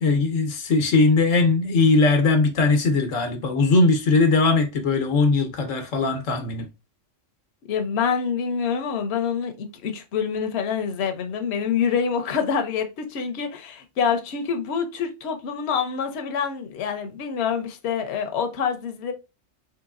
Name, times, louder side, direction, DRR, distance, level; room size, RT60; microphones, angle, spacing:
voice 1, 0.0-6.7, left 3 dB, 90° left, 1.2 m, -20 dB
voice 2, 7.7-19.1, left 6 dB, 65° left, 0.9 m, -26 dB
3.9 x 3.1 x 2.4 m
omnidirectional pair, 1.3 m